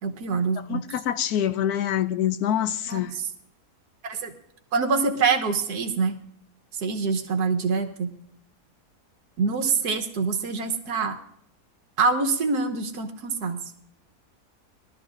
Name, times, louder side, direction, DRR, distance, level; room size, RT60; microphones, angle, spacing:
voice 1, 0.0-0.8 2.9-3.0 4.0-4.3 4.7-6.1 6.8-8.1 9.4-11.2 12.0-13.6, right 4 dB, 80° right, 1.6 m, -25 dB
voice 2, 0.7-3.1, left 10 dB, 75° left, 1.1 m, -25 dB
21.0 x 12.5 x 2.5 m
omnidirectional pair, 1.7 m